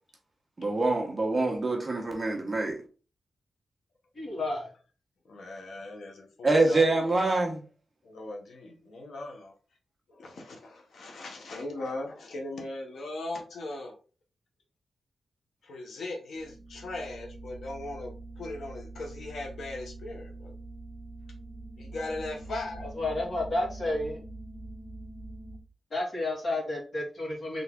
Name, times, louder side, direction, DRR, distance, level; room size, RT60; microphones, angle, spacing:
voice 1, 0.6-2.8 6.4-7.6, right 2 dB, 20° right, 1.1 m, -25 dB
voice 2, 4.2-4.7 23.0-24.2 25.9-27.6, left 2 dB, 45° left, 2.2 m, -31 dB
voice 3, 5.2-7.2 8.0-9.5 10.1-14.0 15.6-20.5 21.8-22.9, left 2 dB, 75° left, 1.0 m, -39 dB
sound 1, 16.4-25.6, right 2 dB, 5° left, 2.0 m, -44 dB
3.9 x 3.6 x 3.6 m
wide cardioid pair, 160°, 0 cm